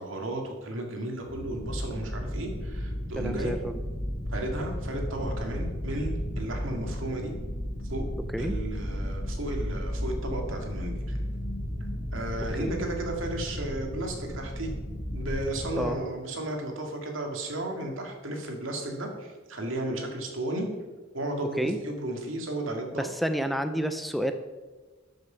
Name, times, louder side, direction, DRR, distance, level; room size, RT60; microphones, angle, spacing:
voice 1, 0.0-3.5 4.3-7.3 7.9-8.0 8.4-11.2 12.1-14.7 15.1-20.7 21.1-23.0, right 1 dB, 75° right, 2 dB, 2.1 m, -34 dB
sound 1, 1.2-15.9, equal, 50° left, 2.8 m, -34 dB
voice 2, 3.2-3.8 8.3-8.6 12.6-12.8 15.8-16.0 21.6-21.8 23.0-24.3, equal, ahead, 8 dB, 0.4 m, -29 dB
13.0 x 6.5 x 5.7 m, 1.3 s
head